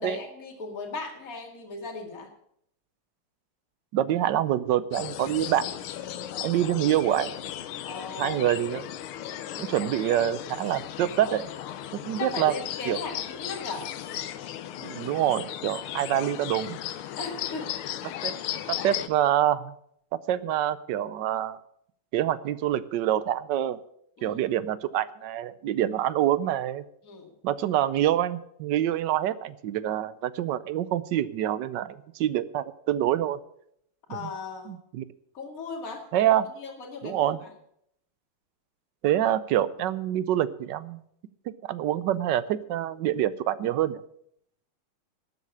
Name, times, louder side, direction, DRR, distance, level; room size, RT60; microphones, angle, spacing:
voice 1, 0.0-2.3 7.8-8.4 12.2-13.9 17.2-17.7 24.2-24.4 27.0-27.3 34.1-34.7 35.3-36.0 36.6-37.3, left 4 dB, 40° left, 1 dB, 2.6 m, -37 dB
voice 2, 3.9-5.6 6.4-7.3 8.2-8.9 9.6-11.5 12.1-12.5 12.9-13.0 14.8-16.8 18.2-18.3 18.7-19.7 20.3-21.6 22.1-23.8 24.2-26.8 27.4-33.4 34.1-34.3 34.7-35.0 36.1-36.5 37.0-37.4 39.0-41.0 41.5-44.0, right 12 dB, 70° right, 17 dB, 1.1 m, -26 dB
sound 1, 4.9-19.1, left 11 dB, 75° left, 1.7 m, -36 dB
12.5 x 8.1 x 8.4 m, 0.71 s
omnidirectional pair, 2.4 m